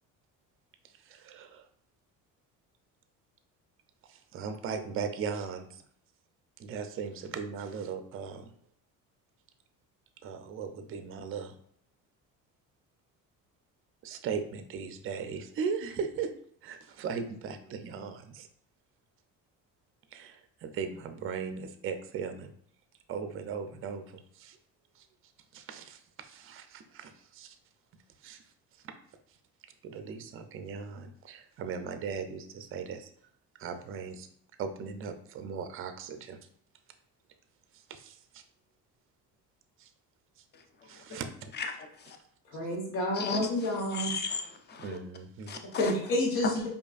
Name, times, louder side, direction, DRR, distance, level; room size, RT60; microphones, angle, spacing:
voice 1, 1.0-1.7 4.1-5.8 6.6-8.5 10.2-11.5 14.0-16.3 16.6-18.5 20.1-22.5 23.1-24.6 25.0-25.1 25.5-27.6 28.2-28.4 28.8-28.9 29.8-33.1 33.6-34.3 34.6-36.4 37.7-38.4 39.8-39.9 40.8-41.5 44.8-45.5, right 6 dB, 40° right, 0.4 m, -38 dB
voice 2, 40.5-41.0 41.5-42.2 43.1-45.0 45.5-45.9 46.4-46.5, left 3 dB, 30° left, 0.5 m, -35 dB
voice 3, 42.4-44.1 45.8-46.7, left 1 dB, 80° left, 1.2 m, -30 dB
4.7 x 2.6 x 2.4 m
cardioid pair, 100°, 35 cm